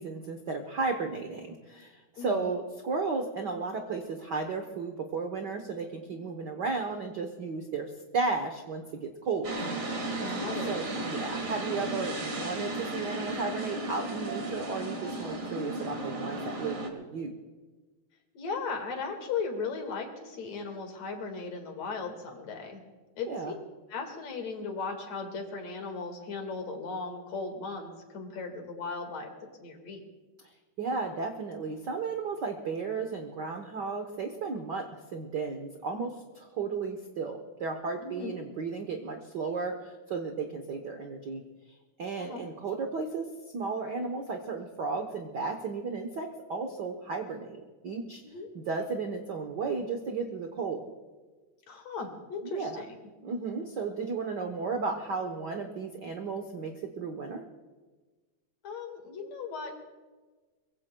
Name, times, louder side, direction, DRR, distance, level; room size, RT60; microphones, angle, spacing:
voice 1, 0.0-9.5 10.7-17.3 23.2-23.5 30.8-41.4 42.0-43.3 43.5-48.2 48.5-50.8 52.4-52.8 53.2-57.4, right 4 dB, 90° right, 4 dB, 0.9 m, -34 dB
voice 2, 2.2-2.5 10.1-10.8 18.3-22.8 23.2-23.5 23.9-29.3 29.6-30.0 38.0-38.4 42.2-42.4 48.2-48.5 51.7-52.9 58.6-59.8, left 4 dB, 65° left, 3 dB, 3.1 m, -37 dB
sound 1, 9.4-16.9, right 2 dB, 35° right, 1.6 m, -35 dB
23.0 x 22.5 x 2.3 m, 1.3 s
omnidirectional pair, 3.4 m